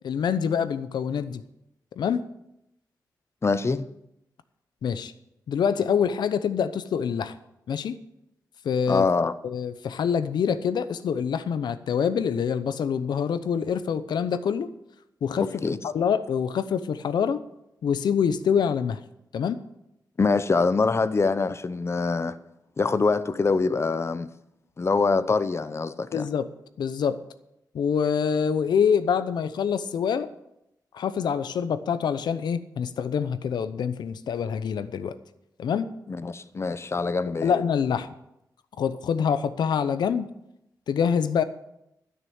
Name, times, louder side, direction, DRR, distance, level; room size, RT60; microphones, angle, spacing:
voice 1, 0.0-1.4 2.0-2.3 4.8-5.1 5.5-7.3 7.7-8.0 8.6-9.0 9.4-14.7 15.2-17.4 17.8-19.0 19.3-19.6 26.1-26.5 26.8-27.2 27.7-30.3 30.9-35.2 35.6-35.9 37.4-38.1 38.8-40.3 40.9-41.4, left 7 dB, 85° left, 0.8 m, -25 dB
voice 2, 3.4-3.9 8.9-9.3 15.4-15.8 20.2-22.4 22.8-24.3 24.8-26.3 36.1-37.5, left 4 dB, 40° left, 0.8 m, -24 dB
12.0 x 6.8 x 8.8 m
cardioid pair, 80°, 7 cm